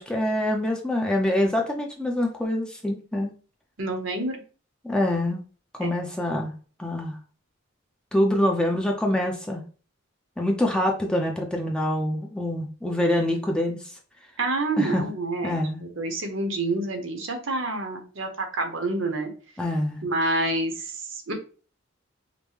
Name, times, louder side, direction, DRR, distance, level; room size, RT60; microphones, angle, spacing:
voice 1, 0.0-3.3 4.8-5.4 5.8-6.5 6.8-7.2 8.1-9.6 10.4-13.8 14.8-15.0 15.4-15.8 19.6-20.0, left 1 dB, 5° left, 1 dB, 0.5 m, -25 dB
voice 2, 3.8-4.4 5.8-5.9 14.4-19.3 20.0-21.3, right 2 dB, 70° right, 4 dB, 0.9 m, -28 dB
5.2 x 2.1 x 3.1 m, 0.38 s
head